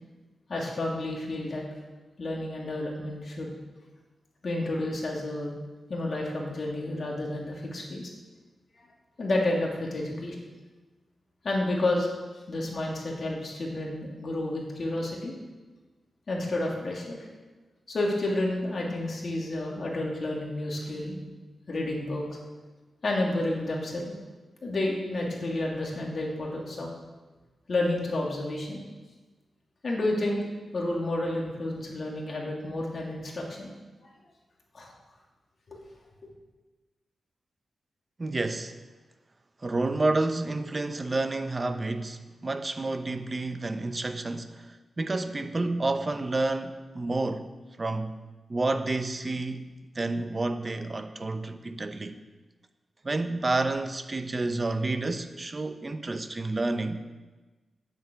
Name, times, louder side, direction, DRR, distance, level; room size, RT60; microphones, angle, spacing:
voice 1, 0.5-1.6 2.2-3.5 4.4-5.6 5.9-8.1 9.2-10.4 11.4-12.1 12.5-15.3 16.3-17.2 17.9-21.2 21.7-22.4 23.0-24.1 24.6-26.9 27.7-28.8 29.8-30.4 30.7-33.7 34.0-34.1 34.7-34.9 35.7-35.8 36.2-36.3, left 1 dB, 50° left, 2.7 m, -30 dB
voice 2, 38.2-38.8 39.6-47.5 47.8-48.2 48.5-49.7 49.9-52.2 53.0-57.0, right 2 dB, 30° right, 0.8 m, -30 dB
9.4 x 8.2 x 7.6 m
wide cardioid pair, 110°, 0 cm